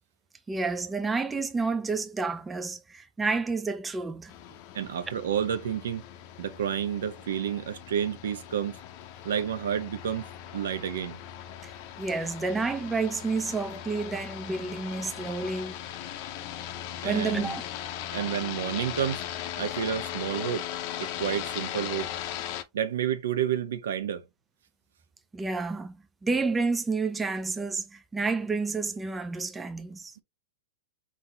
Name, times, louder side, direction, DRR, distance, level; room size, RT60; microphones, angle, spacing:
voice 1, 0.5-4.3 11.6-15.8 17.0-17.6 25.3-26.0 26.2-30.2, right 4 dB, 10° right, 0.3 m, -30 dB
sound 1, 4.3-22.6, left 11 dB, 35° left, 0.7 m, -38 dB
voice 2, 4.7-6.0 6.4-8.8 9.2-10.2 10.5-11.2 17.0-17.6 18.1-19.2 19.6-20.7 21.0-22.1 22.7-24.2, right 9 dB, 75° right, 1.1 m, -30 dB
4.2 x 3.8 x 2.8 m
supercardioid pair, 165°, 0 cm